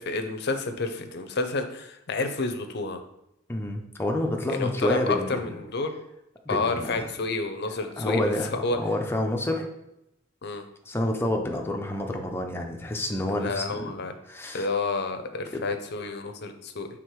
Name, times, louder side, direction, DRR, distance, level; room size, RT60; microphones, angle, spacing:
voice 1, 0.0-3.0 4.5-5.9 6.5-8.3 8.6-8.8 10.4-10.6 13.3-14.1 14.5-16.9, left 3 dB, 55° left, 7 dB, 0.7 m, -30 dB
voice 2, 3.5-5.5 6.4-7.1 8.0-9.7 10.9-13.9 14.3-14.7 15.5-15.6, left 1 dB, 10° left, 2 dB, 0.7 m, -28 dB
6.5 x 3.5 x 4.6 m, 0.85 s
head